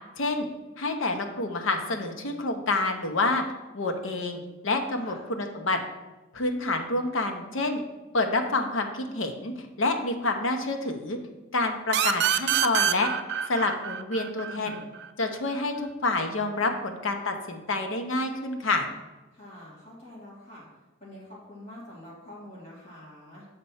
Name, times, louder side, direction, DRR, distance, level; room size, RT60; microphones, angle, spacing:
voice 1, 0.2-0.5 0.8-3.4 3.7-5.8 6.3-7.8 8.1-11.2 11.5-13.1 13.5-14.8 15.2-18.9, left 2 dB, 70° left, 5 dB, 0.8 m, -28 dB
sound 1, 11.9-15.3, right 9 dB, 55° right, 0.4 m, -26 dB
voice 2, 14.5-14.9 19.3-20.7 21.0-23.5, left 1 dB, 30° left, -6 dB, 2.4 m, -46 dB
6.7 x 4.3 x 5.6 m, 1.1 s
head